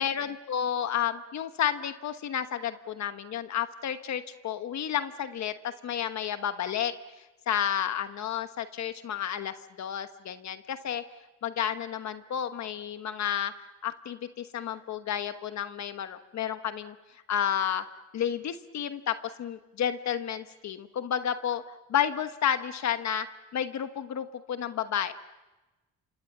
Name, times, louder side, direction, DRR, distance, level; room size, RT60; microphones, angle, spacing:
voice 1, 0.0-5.5 5.8-6.9 7.5-11.0 11.4-13.5 13.8-16.9 17.3-17.8 18.1-21.6 21.9-23.3 23.5-25.1, left 9 dB, 65° left, 9 dB, 1.2 m, -31 dB
28.5 x 26.0 x 7.3 m, 1.1 s
cardioid pair, 90°, 30 cm